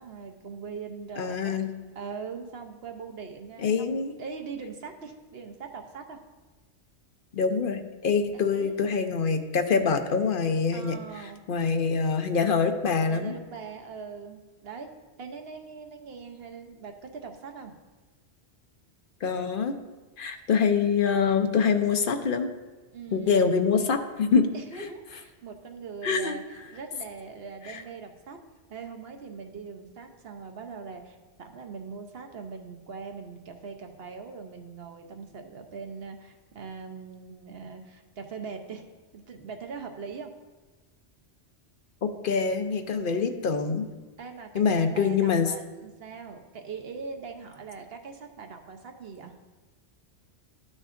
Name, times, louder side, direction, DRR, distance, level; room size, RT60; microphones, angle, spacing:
voice 1, 0.0-1.6 1.9-6.2 8.5-8.8 10.7-11.4 13.1-14.9 15.2-17.7 22.9-23.4 24.5-28.4 28.7-38.8 39.1-40.3 44.2-49.4, right 5 dB, 65° right, 5 dB, 1.0 m, -41 dB
voice 2, 1.2-1.7 3.6-4.1 7.3-11.0 11.5-13.3 19.2-19.7 20.2-22.5 23.1-24.5 24.8-24.9 26.0-26.3 27.7-27.8 42.0-43.9 44.5-45.5, left 5 dB, 55° left, 6 dB, 0.8 m, -25 dB
12.5 x 6.3 x 2.5 m, 1.3 s
omnidirectional pair, 1.1 m